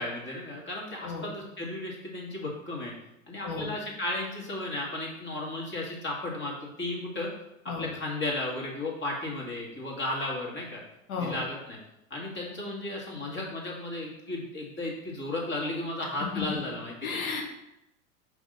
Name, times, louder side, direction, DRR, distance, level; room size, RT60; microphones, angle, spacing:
voice 1, 0.0-2.9 3.3-7.3 7.8-10.8 11.2-11.8 12.1-17.2, left 2 dB, 25° left, -2 dB, 2.1 m, -34 dB
voice 2, 17.0-17.4, left 5 dB, 75° left, 1 dB, 1.5 m, -33 dB
5.2 x 3.6 x 5.3 m, 0.86 s
hypercardioid pair, 85°, 42 cm